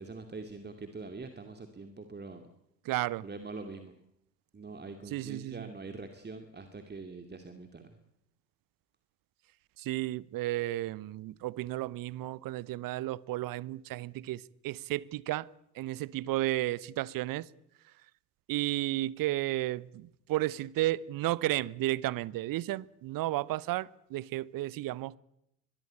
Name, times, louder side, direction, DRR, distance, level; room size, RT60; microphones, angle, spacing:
voice 1, 0.0-2.4 3.2-3.9 4.5-8.0, right 3 dB, 20° right, 2.5 m, -44 dB
voice 2, 2.8-3.2 5.1-5.7 9.8-15.5 15.7-17.5 18.5-25.2, right 16 dB, 40° right, 0.9 m, -33 dB
23.0 x 22.0 x 8.6 m
figure-of-eight pair, 55°, 50 cm